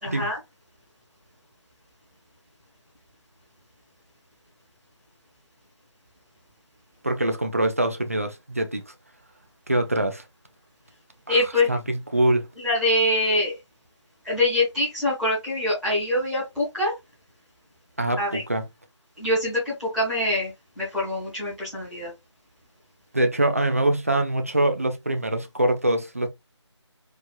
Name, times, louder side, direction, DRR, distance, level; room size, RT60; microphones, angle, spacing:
voice 1, 0.0-0.4 11.3-11.7 12.6-13.6 14.2-16.9 18.2-18.4 19.2-22.1, left 1 dB, ahead, 0.9 m, -24 dB
voice 2, 7.0-8.8 9.7-10.2 11.3-12.5 18.0-18.6 23.1-26.3, right 1 dB, 30° right, 0.5 m, -24 dB
4.6 x 2.6 x 2.3 m
figure-of-eight pair, 165°, 15 cm